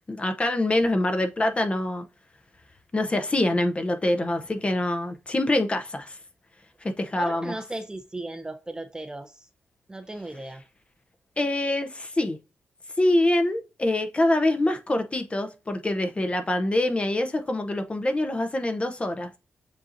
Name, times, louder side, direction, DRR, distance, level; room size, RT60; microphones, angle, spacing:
voice 1, 0.1-2.0 2.9-6.2 6.8-7.6 11.4-12.4 13.0-19.4, left 1 dB, 25° left, 0.7 m, -25 dB
voice 2, 7.2-9.3 9.9-10.6, right 2 dB, 15° right, 0.6 m, -36 dB
7.4 x 2.8 x 2.6 m
cardioid pair, 80°, 4 cm